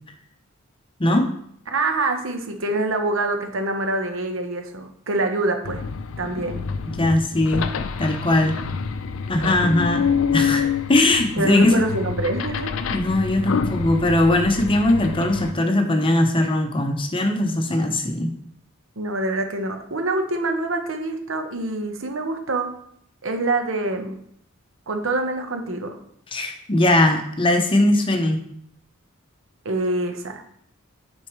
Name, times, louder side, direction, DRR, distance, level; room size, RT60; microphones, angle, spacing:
voice 1, 1.0-1.3 6.9-7.7 8.0-8.6 9.3-11.9 12.9-18.3 26.3-28.4, left 1 dB, 25° left, 6 dB, 0.7 m, -20 dB
voice 2, 1.7-5.8 6.2-6.6 11.4-12.7 19.0-22.7 23.2-24.1 24.9-26.0 29.6-30.4, right 2 dB, 75° right, 5 dB, 1.0 m, -25 dB
sound 1, 5.6-15.5, left 6 dB, 75° left, 0.4 m, -27 dB
9.3 x 4.4 x 3.1 m, 0.69 s
head